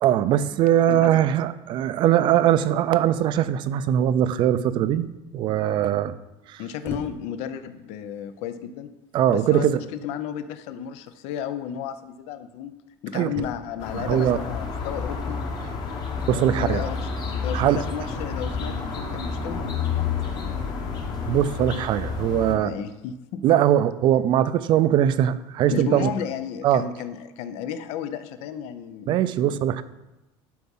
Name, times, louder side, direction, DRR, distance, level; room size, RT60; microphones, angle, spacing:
voice 1, 0.0-6.1 9.1-9.8 13.1-13.3 13.9-14.4 16.3-16.8 17.5-17.8 21.2-22.7 23.4-26.1 26.6-26.8 29.1-29.8, right 11 dB, 45° right, 14 dB, 0.4 m, -21 dB
voice 2, 0.9-1.2 6.6-8.9 9.3-12.7 13.0-15.4 16.3-20.8 22.6-23.4 25.7-29.1, left 9 dB, 65° left, 11 dB, 0.7 m, -33 dB
sound 1, 6.8-7.4 8.2-8.4 9.2-9.3 9.5-9.8 11.1-11.2 11.4-11.5 11.7-11.8 13.3-13.9 16.1-16.8 18.1-18.7 19.9-20.4, left 3 dB, 20° left, 0.9 m, -40 dB
sound 2, 13.8-22.5, left 5 dB, 35° left, 1.4 m, -30 dB
12.0 x 4.7 x 5.5 m, 1.0 s
cardioid pair, 165°, 12 cm